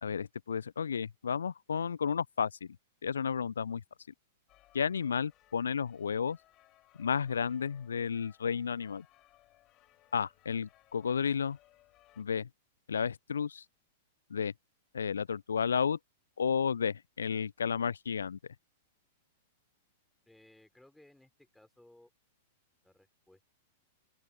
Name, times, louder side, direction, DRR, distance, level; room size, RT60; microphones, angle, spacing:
voice 1, 0.0-2.7 3.0-3.8 4.7-6.4 7.0-9.0 10.1-11.6 12.2-12.5 12.9-13.6 14.3-14.5 14.9-16.0 16.4-18.4, left 6 dB, 70° left, 0.3 m, -32 dB
sound 1, 4.5-12.2, left 16 dB, 35° left, 4.8 m, -65 dB
voice 2, 20.3-22.1 22.8-23.4, left 1 dB, 5° left, 4.2 m, -61 dB
open air
figure-of-eight pair, 100°, 0 cm